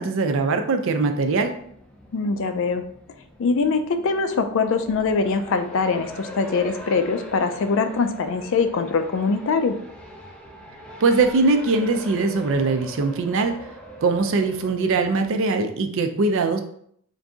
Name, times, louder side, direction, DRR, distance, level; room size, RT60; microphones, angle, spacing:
voice 1, 0.0-1.5 11.0-13.5 14.0-16.6, right 3 dB, 60° right, 6 dB, 0.4 m, -21 dB
Race car auto racing, 1.2-15.3, equal, 5° left, 0.5 m, -41 dB
voice 2, 2.1-2.8 3.4-9.8, left 4 dB, 60° left, 8 dB, 0.4 m, -23 dB
3.9 x 2.6 x 3.5 m, 0.67 s
head